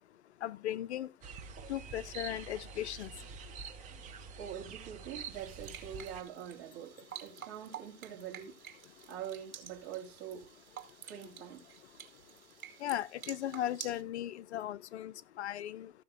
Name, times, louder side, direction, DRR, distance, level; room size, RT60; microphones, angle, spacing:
voice 1, 0.4-1.1 1.7-3.1 12.8-15.9, left 12 dB, 50° left, 0.6 m, -37 dB
sound 1, 1.2-6.2, right 6 dB, 20° right, 0.9 m, -47 dB
voice 2, 4.4-8.6 9.1-10.5 11.0-11.8, right 9 dB, 45° right, 3.2 m, -44 dB
sound 2, 5.3-14.0, right 9 dB, 70° right, 2.6 m, -50 dB
14.5 x 6.5 x 3.6 m
hypercardioid pair, 135°, 43 cm